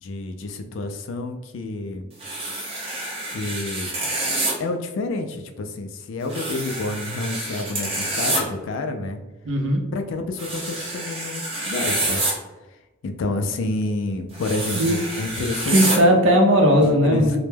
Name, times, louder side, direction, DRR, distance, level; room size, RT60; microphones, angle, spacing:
voice 1, 0.0-2.1 3.3-3.9 4.6-9.2 9.9-12.2 13.0-16.1 16.8-17.4, left 2 dB, 80° left, 5 dB, 0.3 m, -29 dB
sound 1, 2.2-4.5 6.3-8.4 10.4-12.3 14.3-16.0, right 2 dB, 30° right, 0.6 m, -27 dB
voice 2, 9.4-9.8 14.8-15.0 15.7-17.4, equal, 80° right, 1 dB, 0.5 m, -17 dB
2.1 x 2.1 x 3.2 m, 1.1 s
head